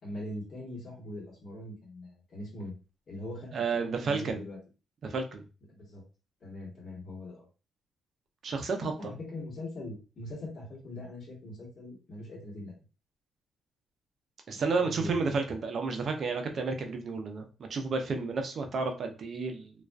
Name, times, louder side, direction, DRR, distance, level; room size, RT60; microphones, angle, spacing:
voice 1, 0.0-2.7 3.1-3.6 4.0-4.6 5.7-6.0 6.4-7.5 9.0-12.7 14.8-15.2, left 1 dB, 50° left, -5 dB, 1.2 m, -41 dB
voice 2, 3.5-4.4 5.0-5.4 8.4-9.1 14.5-19.7, right 4 dB, 50° right, 5 dB, 0.5 m, -31 dB
2.4 x 2.3 x 2.2 m, 0.32 s
cardioid pair, 90°, 0 cm